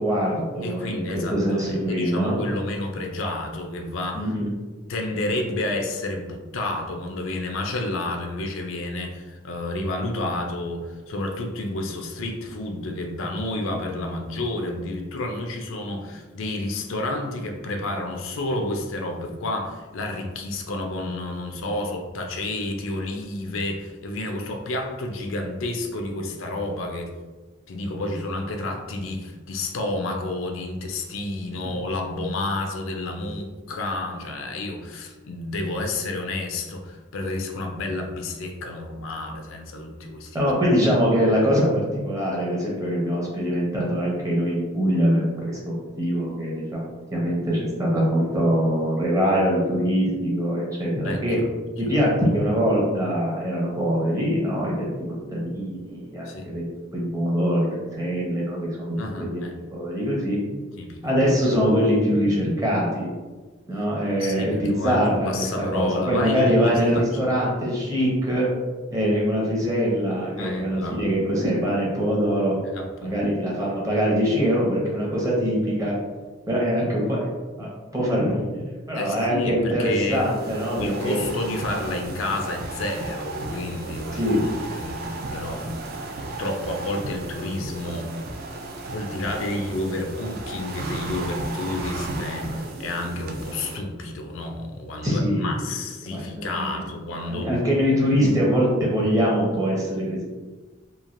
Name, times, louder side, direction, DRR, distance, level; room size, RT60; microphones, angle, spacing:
voice 1, 0.0-2.4 4.1-4.5 40.3-51.4 51.8-54.9 55.3-56.6 56.9-59.4 59.7-60.4 61.0-63.1 63.6-68.5 68.9-72.5 73.0-75.9 76.5-77.3 77.6-81.2 84.1-84.4 95.0-95.5 96.1-96.7 97.3-100.2, equal, 15° right, -4 dB, 0.7 m, -23 dB
voice 2, 0.6-4.3 4.9-27.1 27.7-40.4 51.0-51.2 56.2-56.5 58.9-59.5 60.8-61.0 64.2-67.5 70.4-71.0 72.6-73.2 78.9-80.2 80.8-85.7 85.9-88.1 88.9-97.5, left 2 dB, 80° left, 3 dB, 0.4 m, -30 dB
sound 1, 80.1-93.8, right 2 dB, 50° right, 0.3 m, -34 dB
3.1 x 2.4 x 2.5 m, 1.3 s
head